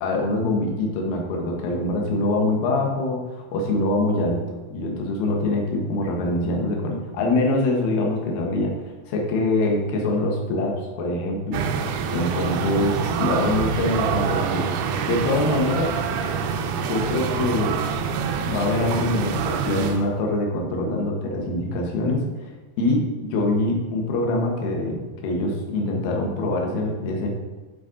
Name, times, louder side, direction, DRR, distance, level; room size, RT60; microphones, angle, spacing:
voice 1, 0.0-4.4 4.7-8.7 9.1-11.7 12.1-14.7 15.0-15.9 16.9-17.8 18.5-22.3 22.8-27.3, left 2 dB, 75° left, 0 dB, 2.7 m, -24 dB
sound 1, 11.5-20.1, right 6 dB, 80° right, 2.2 m, -26 dB
9.3 x 4.1 x 3.7 m, 1.2 s
omnidirectional pair, 4.3 m